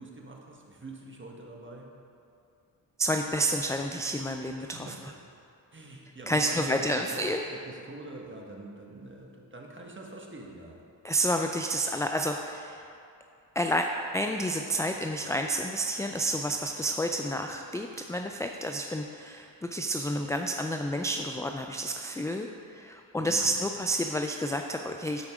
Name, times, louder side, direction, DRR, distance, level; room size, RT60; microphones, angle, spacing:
voice 1, 0.0-1.9 4.6-5.4 5.7-10.8 23.1-23.6, right 2 dB, 25° right, 0 dB, 1.5 m, -44 dB
voice 2, 3.0-5.1 6.3-7.4 11.0-12.9 13.6-13.9 14.1-25.2, equal, 10° left, 4 dB, 0.3 m, -30 dB
12.5 x 4.6 x 3.7 m, 2.5 s
supercardioid pair, 50°, 43 cm